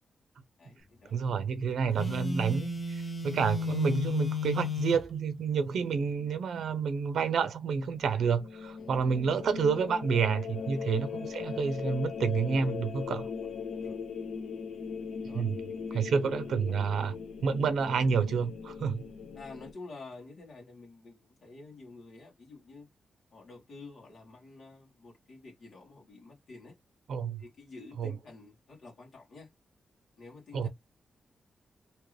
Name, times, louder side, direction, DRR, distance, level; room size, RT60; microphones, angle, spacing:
voice 1, 0.6-1.2 3.3-3.4 8.8-9.0 10.7-10.9 13.4-14.0 15.2-16.1 16.9-17.0 19.3-22.9 23.3-26.8 27.4-29.5 30.2-30.7, left 3 dB, 60° left, 1.4 m, -50 dB
voice 2, 1.1-13.3 15.3-15.6 15.9-17.1 17.4-19.0 27.1-27.4 28.0-28.1 30.5-30.7, right 6 dB, 85° right, 0.6 m, -29 dB
Telephone, 1.9-5.1, left 4 dB, 15° left, 0.8 m, -33 dB
sound 1, 7.8-19.7, left 6 dB, 85° left, 0.6 m, -39 dB
2.9 x 2.4 x 3.2 m
wide cardioid pair, 165°, 0 cm